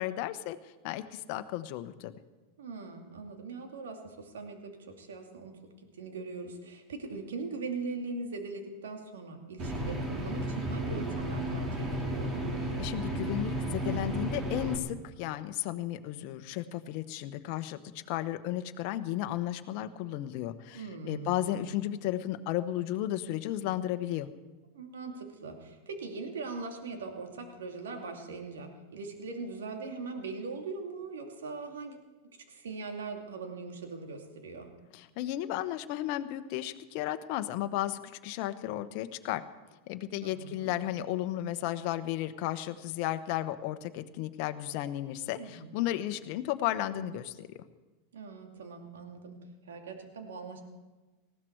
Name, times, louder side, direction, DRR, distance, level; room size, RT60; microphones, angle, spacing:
voice 1, 0.0-2.1 12.8-17.8 18.1-24.3 34.9-39.4 39.9-47.6, left 13 dB, 55° left, 9 dB, 1.1 m, -34 dB
voice 2, 2.6-5.5 5.9-10.0 10.2-12.3 20.7-21.7 24.7-32.0 32.5-34.7 40.2-40.7 45.4-45.7 48.1-49.4 49.6-50.6, right 4 dB, 85° right, 3 dB, 2.6 m, -41 dB
sound 1, 9.6-14.8, right 1 dB, 30° right, 3.5 m, -33 dB
19.0 x 15.0 x 4.7 m, 1.2 s
hypercardioid pair, 110°, 0 cm